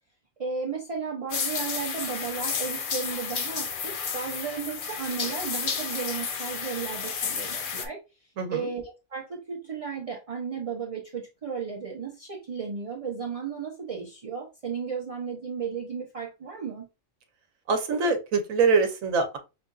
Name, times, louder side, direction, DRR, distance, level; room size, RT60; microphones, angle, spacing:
voice 1, 0.4-8.0 8.5-8.8 9.1-16.9, right 6 dB, 35° right, -1 dB, 0.6 m, -34 dB
sound 1, 1.3-7.9, left 6 dB, 55° left, 0.6 m, -32 dB
voice 2, 8.4-8.7 17.7-19.4, right 4 dB, 80° right, 6 dB, 1.2 m, -24 dB
5.5 x 2.5 x 2.3 m, 0.28 s
omnidirectional pair, 1.4 m